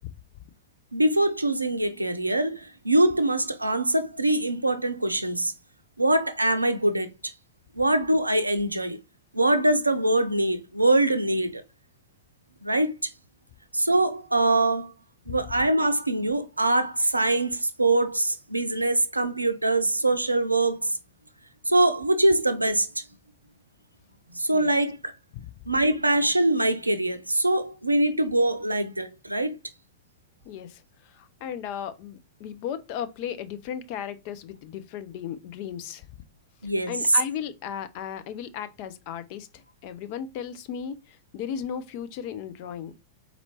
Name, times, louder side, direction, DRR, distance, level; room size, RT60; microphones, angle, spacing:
voice 1, 0.9-5.5 6.0-7.3 7.8-9.0 9.3-11.6 12.6-13.1 13.7-14.9 15.3-21.0 21.7-23.0 24.3-25.2 25.7-29.6 36.6-36.9, right 1 dB, 85° right, 0.5 m, -23 dB
voice 2, 30.4-36.1 36.9-43.0, left 8 dB, 45° left, 0.6 m, -36 dB
4.3 x 4.1 x 2.9 m
figure-of-eight pair, 90°, 0 cm